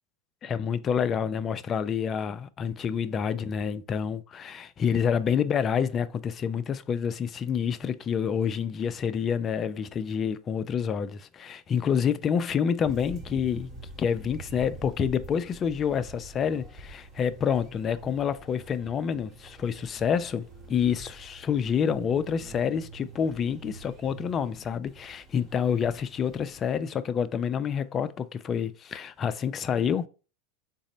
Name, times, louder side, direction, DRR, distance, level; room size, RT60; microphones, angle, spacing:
voice 1, 0.4-13.7 14.0-30.1, left 7 dB, 30° left, 0.3 m, -28 dB
sound 1, 12.8-26.7, right 2 dB, 35° right, 1.0 m, -46 dB
4.0 x 2.0 x 3.8 m
hypercardioid pair, 105°, 0 cm